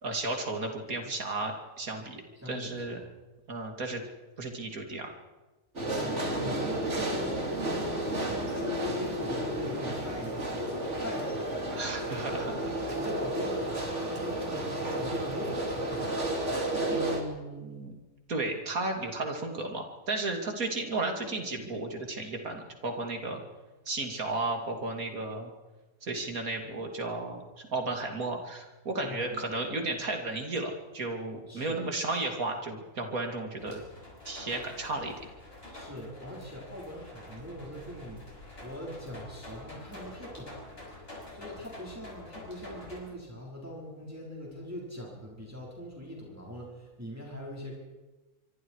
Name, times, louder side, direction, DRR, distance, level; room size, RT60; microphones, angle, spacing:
voice 1, 0.0-3.0 3.5-4.0 4.4-5.1 11.7-12.9 16.9-17.9 18.3-23.4 23.8-25.5 26.0-33.8 34.2-35.2, right 2 dB, 70° right, 3 dB, 3.3 m, -34 dB
voice 2, 2.4-3.0 5.9-10.6 10.9-11.9 12.9-16.4 29.0-29.6 31.5-31.8 35.7-40.5 41.3-47.8, equal, 10° right, -3 dB, 5.2 m, -41 dB
sound 1, 5.8-17.2, right 1 dB, 50° right, 3.4 m, -32 dB
sound 2, 33.6-43.0, left 1 dB, 40° left, 6.6 m, -47 dB
25.0 x 24.5 x 4.9 m, 1.1 s
omnidirectional pair, 1.6 m